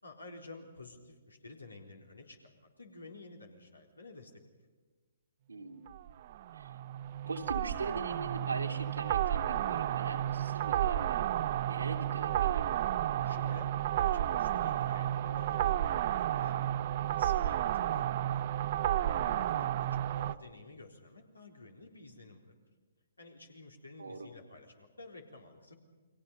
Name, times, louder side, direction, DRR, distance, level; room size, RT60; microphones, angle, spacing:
voice 1, 0.0-4.3 13.2-18.1 18.3-18.4 19.0-22.5 23.2-25.7, left 2 dB, 90° left, 2 dB, 4.0 m, -51 dB
voice 2, 5.5-5.9 6.5-6.7 7.3-11.3 11.7-12.7 19.3-19.6 24.0-24.3, right 3 dB, 80° right, 3 dB, 2.7 m, -41 dB
sound 1, 5.9-20.3, right 12 dB, 45° right, 0.8 m, -32 dB
29.5 x 22.5 x 5.5 m, 1.4 s
figure-of-eight pair, 130°, 0 cm